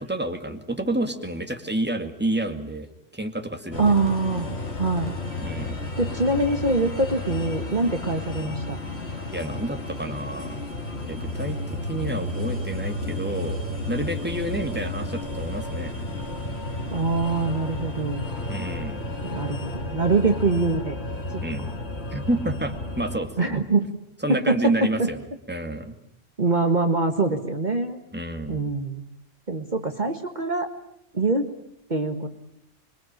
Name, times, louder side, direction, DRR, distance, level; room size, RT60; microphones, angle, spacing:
voice 1, 0.0-2.9 3.1-3.9 5.4-5.8 9.3-10.6 11.1-11.6 11.9-13.6 13.9-16.0 18.5-19.0 21.4-21.7 22.1-23.6 24.2-26.0 28.1-28.7, right 1 dB, 10° right, 6 dB, 2.2 m, -29 dB
sound 1, 3.7-23.2, left 2 dB, 55° left, 3.3 m, -32 dB
voice 2, 3.8-4.5 4.8-5.1 6.0-8.8 16.9-18.2 19.2-20.9 21.6-21.7 23.4-23.9 24.3-25.1 26.4-28.0 28.5-29.0 29.5-30.7 31.1-31.5 31.9-32.3, right 3 dB, 40° right, 6 dB, 1.7 m, -24 dB
27.0 x 23.0 x 9.0 m, 0.74 s
omnidirectional pair, 1.3 m